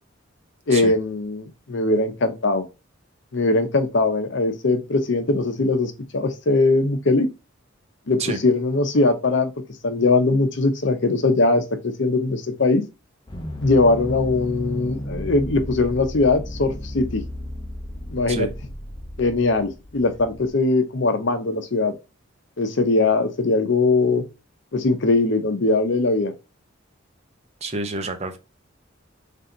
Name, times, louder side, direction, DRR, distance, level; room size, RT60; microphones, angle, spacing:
voice 1, 0.7-2.7 3.3-7.3 8.1-9.5 9.8-12.8 13.6-17.2 18.1-18.5 19.2-21.9 22.6-24.2 24.7-26.3, left 3 dB, 60° left, 0.7 m, -20 dB
sound 1, 13.3-20.5, equal, 25° left, 0.6 m, -34 dB
voice 2, 27.6-28.4, right 3 dB, 30° right, 0.6 m, -28 dB
3.4 x 2.7 x 3.8 m
head